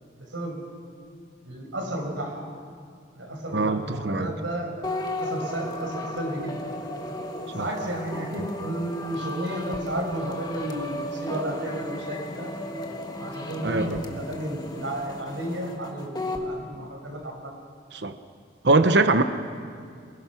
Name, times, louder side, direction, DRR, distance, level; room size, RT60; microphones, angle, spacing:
voice 1, 0.2-0.6 1.4-2.5 3.2-4.9 5.2-6.7 7.6-12.5 13.2-17.5, right 1 dB, 85° right, 2 dB, 5.5 m, -32 dB
voice 2, 3.5-4.3 7.5-7.7 13.6-14.0 17.9-18.1 18.6-19.2, right 3 dB, 60° right, 9 dB, 0.9 m, -22 dB
sound 1, 4.8-16.5, left 1 dB, 20° left, 1.5 m, -35 dB
27.5 x 21.5 x 6.1 m, 2.2 s
head